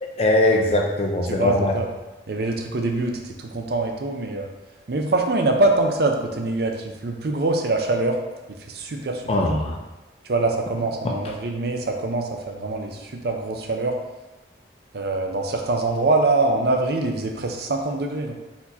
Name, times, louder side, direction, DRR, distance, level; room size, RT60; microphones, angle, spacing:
voice 1, 0.0-1.8 9.3-9.8 11.0-11.3, left 1 dB, 30° left, 0 dB, 0.5 m, -21 dB
voice 2, 1.3-1.9 2.3-4.5 4.9-8.2 8.7-9.2 10.2-14.0 14.9-18.4, right 2 dB, 55° right, 3 dB, 0.5 m, -24 dB
4.3 x 2.9 x 4.1 m, 1.1 s
head